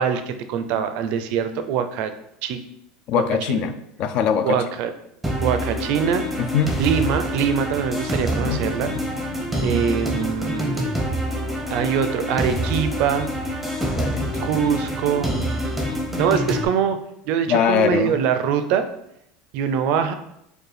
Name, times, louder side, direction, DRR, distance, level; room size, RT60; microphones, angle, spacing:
voice 1, 0.0-2.1 2.4-2.6 3.5-3.6 4.4-4.9 5.4-6.2 6.8-8.9 9.6-10.9 11.7-13.3 14.4-15.3 16.2-17.0 17.3-18.9 19.5-20.1, right 7 dB, 60° right, 9 dB, 0.4 m, -23 dB
voice 2, 3.1-3.7 4.0-4.6 6.4-6.7 8.3-9.0 13.9-14.3 17.5-18.1, left 7 dB, 55° left, 10 dB, 0.3 m, -22 dB
sound 1, 5.2-16.7, equal, 5° right, 0.6 m, -26 dB
4.6 x 2.2 x 3.2 m, 0.78 s
supercardioid pair, 115°, 2 cm